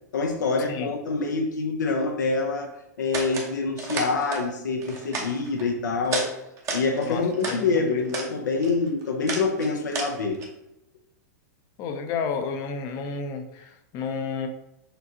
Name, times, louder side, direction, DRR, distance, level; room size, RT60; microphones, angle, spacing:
voice 1, 0.1-2.7 3.0-6.3 6.7-10.4, left 4 dB, 90° left, 2 dB, 0.7 m, -26 dB
sound 1, 3.1-3.5 3.8-4.4 4.8-5.7 6.0-6.3 6.6-7.6 8.0-8.3 8.6-10.5, right 3 dB, 30° right, 1.0 m, -32 dB
voice 2, 7.1-7.6 7.9-8.0 11.8-14.5, left 5 dB, 40° left, 6 dB, 0.6 m, -31 dB
6.7 x 2.3 x 2.8 m, 0.86 s
hypercardioid pair, 120°, 10 cm